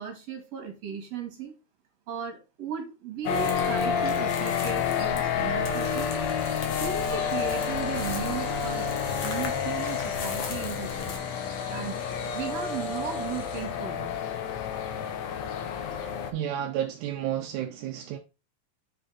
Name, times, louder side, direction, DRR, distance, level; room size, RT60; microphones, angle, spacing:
voice 1, 0.0-1.5 2.1-6.1 6.8-11.4 11.7-12.0 12.3-14.2, right 7 dB, 60° right, 3.5 m, -36 dB
sound 1, 3.2-16.3, left 7 dB, 70° left, 2.1 m, -29 dB
sound 2, 3.2-11.2, left 3 dB, 55° left, 2.3 m, -39 dB
sound 3, 5.8-14.2 14.6-14.8 16.0-16.1, left 3 dB, 35° left, 2.2 m, -47 dB
voice 2, 16.3-18.2, right 10 dB, 85° right, 2.2 m, -31 dB
7.0 x 5.5 x 4.2 m
omnidirectional pair, 3.4 m